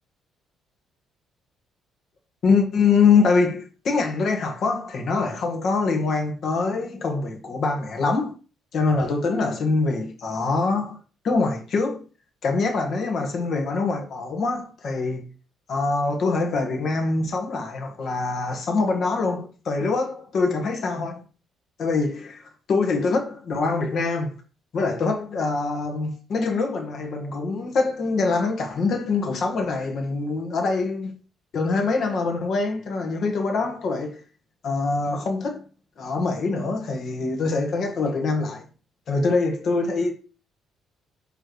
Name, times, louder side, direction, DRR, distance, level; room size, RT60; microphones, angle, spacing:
voice 1, 2.4-8.3 8.7-11.0 11.2-12.0 12.4-15.2 15.7-21.2 21.8-24.4 24.7-31.1 31.5-34.2 34.6-35.7 36.0-38.6 39.1-40.1, left 4 dB, 45° left, 1.7 m, -24 dB
7.8 x 3.2 x 6.3 m
cardioid pair, 155°, 0 cm